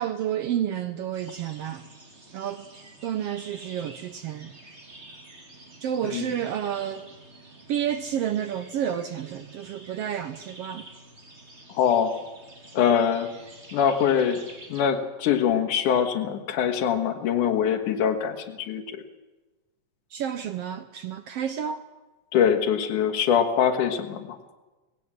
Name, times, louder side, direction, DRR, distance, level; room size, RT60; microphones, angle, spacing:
voice 1, 0.0-1.9 2.3-4.6 5.8-7.1 7.7-10.9 20.1-21.8, right 9 dB, 75° right, 1.5 m, -30 dB
sound 1, 1.1-14.8, right 2 dB, 25° right, 2.4 m, -48 dB
voice 2, 11.7-12.2 12.7-13.3 13.7-14.4 14.7-19.0 22.3-24.4, left 8 dB, 85° left, 2.9 m, -23 dB
19.0 x 16.0 x 8.8 m
omnidirectional pair, 3.5 m